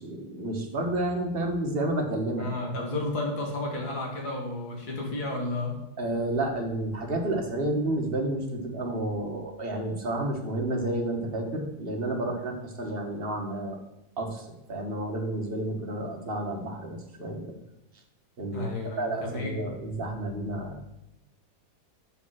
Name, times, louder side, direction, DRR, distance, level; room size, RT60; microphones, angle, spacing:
voice 1, 0.0-2.5 6.0-13.8 14.2-17.5 18.4-20.9, right 1 dB, 35° right, 1 dB, 1.3 m, -31 dB
voice 2, 2.4-5.8 18.5-19.5, left 2 dB, 50° left, -1 dB, 2.4 m, -32 dB
6.8 x 5.1 x 6.3 m, 0.90 s
omnidirectional pair, 2.1 m